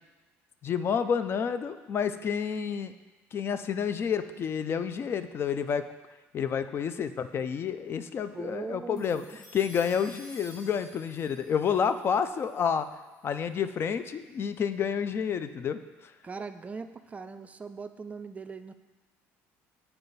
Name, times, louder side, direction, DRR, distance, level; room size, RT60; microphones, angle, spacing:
voice 1, 0.6-2.9 3.3-5.9 6.3-9.2 9.5-12.9 13.2-16.1, left 7 dB, 40° left, 11 dB, 0.4 m, -29 dB
voice 2, 8.3-9.2 16.2-18.7, right 4 dB, 25° right, 9 dB, 0.4 m, -40 dB
sound 1, 9.0-13.5, left 1 dB, 70° left, 1.8 m, -52 dB
7.6 x 4.4 x 4.0 m, 1.2 s
supercardioid pair, 90°, 6 cm